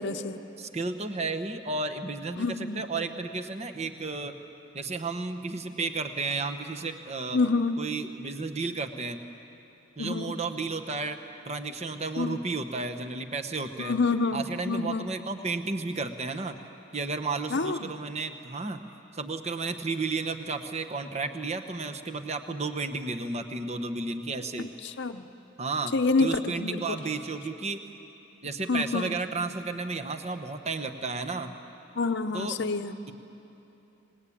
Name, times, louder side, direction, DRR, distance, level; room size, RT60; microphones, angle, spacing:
voice 1, 0.0-0.4 2.4-2.9 7.3-7.8 10.0-10.3 12.2-12.4 13.8-15.1 17.5-17.9 24.6-25.2 25.9-27.0 28.7-29.2 32.0-32.9, left 3 dB, 55° left, 7 dB, 0.8 m, -28 dB
voice 2, 0.6-4.3 4.7-7.4 7.8-9.2 10.0-11.2 11.5-13.9 14.3-16.6 16.9-18.8 19.1-24.7 25.6-25.9 26.2-27.8 28.4-31.5 32.3-32.6, right 3 dB, 30° right, 7 dB, 1.1 m, -32 dB
26.5 x 20.0 x 8.6 m, 2.9 s
head